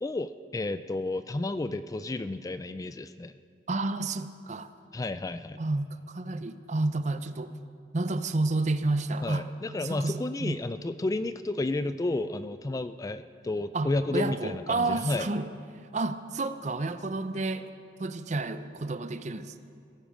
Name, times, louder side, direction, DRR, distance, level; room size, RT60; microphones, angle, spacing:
voice 1, 0.0-3.3 4.9-5.6 9.2-15.3, left 2 dB, 20° left, 12 dB, 0.3 m, -31 dB
voice 2, 3.7-4.7 5.6-7.5 7.9-9.5 9.8-10.6 13.7-15.5 15.9-17.7 18.0-19.6, right 2 dB, 40° right, 11 dB, 0.6 m, -30 dB
16.5 x 14.5 x 5.0 m, 2.3 s
head